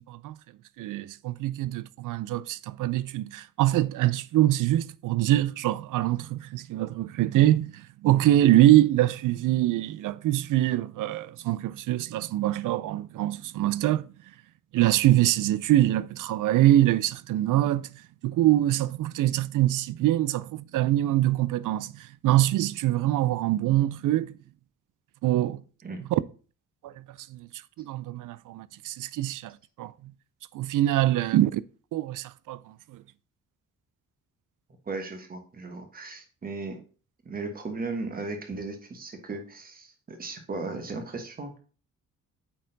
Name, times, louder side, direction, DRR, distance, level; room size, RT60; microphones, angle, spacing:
voice 1, 0.8-14.1 14.7-17.9 18.2-24.3 25.2-25.6 26.1-26.2 26.8-27.0 27.3-27.5 27.8-29.9 30.5-31.6 31.9-33.0, right 14 dB, 75° right, 0.5 m, -24 dB
voice 2, 34.9-36.8 37.2-41.6, right 3 dB, 30° right, 1.3 m, -36 dB
8.4 x 4.4 x 3.9 m
wide cardioid pair, 160°, 31 cm